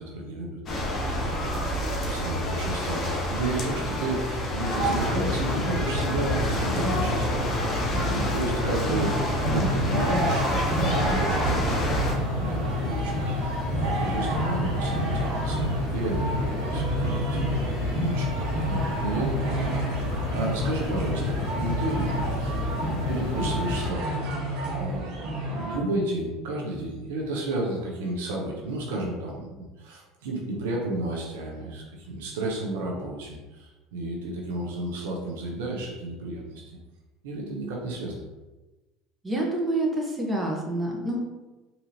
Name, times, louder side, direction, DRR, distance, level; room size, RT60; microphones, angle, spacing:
voice 1, 0.0-17.6 17.9-25.2 25.5-36.6 37.2-38.2, right 2 dB, 80° right, -1 dB, 0.7 m, -32 dB
sound 1, 0.7-12.1, equal, 40° left, 1.0 m, -28 dB
sound 2, 4.7-23.9, left 2 dB, 65° left, 0.7 m, -31 dB
sound 3, 8.7-25.8, right 1 dB, 60° right, 1.2 m, -30 dB
voice 2, 39.2-41.2, right 1 dB, 20° right, -1 dB, 1.0 m, -27 dB
3.9 x 2.8 x 2.8 m, 1.1 s
hypercardioid pair, 80°, 0 cm